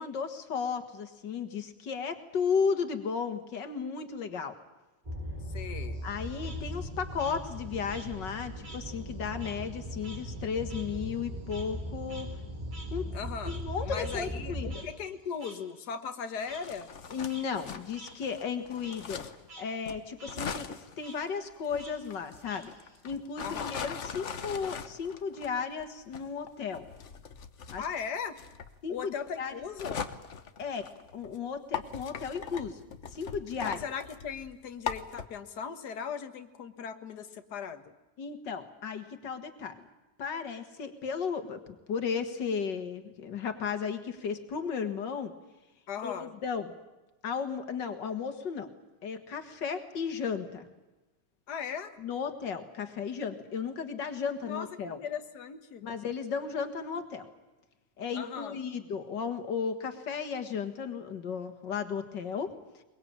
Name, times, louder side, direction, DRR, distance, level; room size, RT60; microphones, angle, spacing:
voice 1, 0.0-4.5 6.0-12.3 12.9-13.1 13.5-14.8 17.1-19.2 19.6-22.7 23.0-26.9 27.7-27.9 28.8-29.5 30.6-32.8 33.1-33.8 38.2-39.9 40.2-41.6 41.9-45.3 46.0-46.7 47.2-48.7 49.0-50.7 52.0-55.0 55.8-57.3 58.0-62.5, left 6 dB, 85° left, 8 dB, 2.3 m, -34 dB
sound 1, 5.0-14.8, equal, 25° right, 3.2 m, -39 dB
voice 2, 5.5-6.0 13.1-16.9 23.4-23.8 27.8-28.4 28.9-30.0 33.6-37.9 45.9-46.3 51.5-52.0 54.4-55.8 58.2-58.6, left 6 dB, 70° left, 7 dB, 1.9 m, -38 dB
Frog, 5.9-8.9 9.2-13.8 14.0-14.2 14.7-14.8 15.4-15.5 16.5-16.6 17.1-17.4 17.9-18.1 18.5-19.0 19.4-19.6 19.9-20.4 21.0-21.2 21.8-23.0, right 2 dB, 80° right, 4.7 m, -50 dB
sound 2, 16.4-19.5 19.9-31.4 31.7-35.3, left 6 dB, 45° left, 1.3 m, -41 dB
23.0 x 21.5 x 8.8 m, 1.1 s
omnidirectional pair, 1.9 m